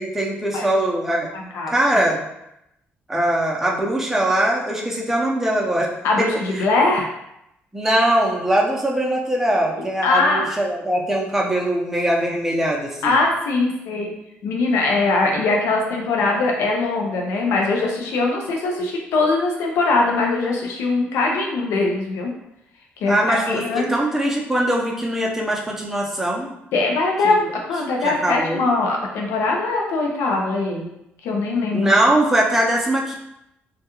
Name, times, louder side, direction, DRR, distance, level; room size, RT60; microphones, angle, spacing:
voice 1, 0.0-1.3 1.7-2.2 3.1-5.9 6.2-6.3 6.6-6.7 7.7-13.2 23.1-26.5 27.2-27.5 28.0-28.7 31.7-33.2, right 1 dB, 5° right, -3 dB, 0.6 m, -21 dB
voice 2, 1.3-1.7 6.0-7.1 9.8-10.4 13.0-14.1 14.4-22.3 23.0-23.9 26.7-27.4 27.7-30.9 31.2-31.9, left 3 dB, 85° left, 0 dB, 0.5 m, -21 dB
2.3 x 2.2 x 2.9 m, 0.83 s
cardioid pair, 85°, 4 cm